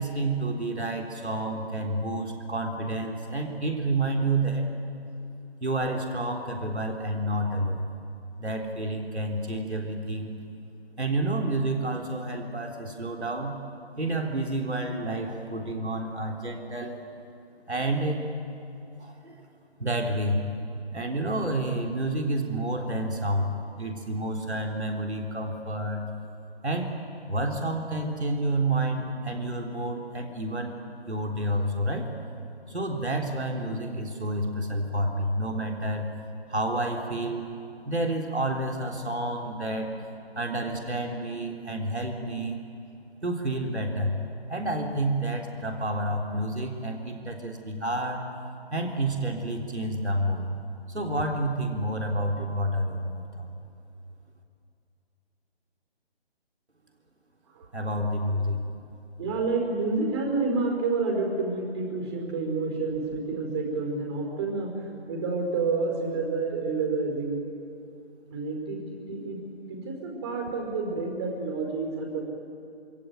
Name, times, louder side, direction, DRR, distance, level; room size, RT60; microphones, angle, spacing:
voice 1, 0.0-4.7 5.6-7.9 8.4-10.3 11.0-13.6 14.0-17.0 17.7-18.3 19.0-19.4 19.8-20.5 20.9-26.1 26.6-26.9 27.3-30.7 31.1-32.1 32.7-36.1 36.5-37.4 37.8-39.9 40.4-42.6 43.2-44.2 44.5-48.2 48.7-50.5 50.9-53.5 57.7-58.6, right 1 dB, 85° right, 1 dB, 3.8 m, -29 dB
voice 2, 59.2-64.7 65.1-67.4 68.3-69.4 69.7-72.2, right 3 dB, 25° right, 1 dB, 5.1 m, -29 dB
26.0 x 23.5 x 9.3 m, 2.6 s
figure-of-eight pair, 150°, 32 cm